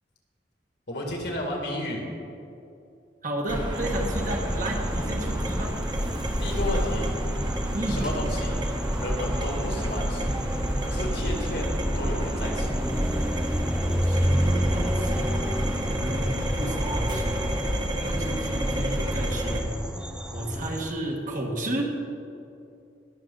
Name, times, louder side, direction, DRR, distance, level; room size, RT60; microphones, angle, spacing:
voice 1, 0.9-2.0 6.4-7.1 7.9-8.6 9.0-10.4 10.8-12.8 18.0-18.2, left 1 dB, 65° left, 0 dB, 2.3 m, -32 dB
voice 2, 3.2-5.7 7.7-8.0 14.0-15.4 15.9-17.5 18.0-19.7 20.3-22.0, right 1 dB, 45° right, 0 dB, 1.6 m, -32 dB
sound 1, 3.5-19.6, equal, 25° right, 1.3 m, -29 dB
sound 2, 3.7-20.9, equal, 5° right, 0.5 m, -31 dB
20.5 x 6.9 x 4.0 m, 2.6 s
head